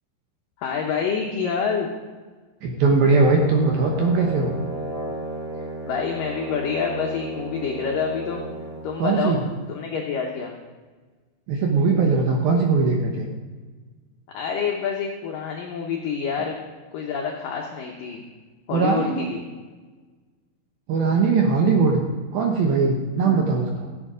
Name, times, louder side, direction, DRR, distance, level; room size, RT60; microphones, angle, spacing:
voice 1, 0.6-1.9 5.9-8.4 8.8-9.4 9.7-10.5 14.3-16.6 16.9-18.2 18.7-19.4 23.2-23.4, left 6 dB, 80° left, 0 dB, 1.9 m, -27 dB
voice 2, 2.6-4.6 9.0-9.4 11.5-13.3 18.7-19.3 20.9-22.0 22.3-23.9, right 4 dB, 70° right, 1 dB, 2.3 m, -20 dB
Brass instrument, 3.4-8.9, right 2 dB, 40° right, 3.2 m, -34 dB
15.0 x 8.4 x 4.9 m, 1.4 s
omnidirectional pair, 5.4 m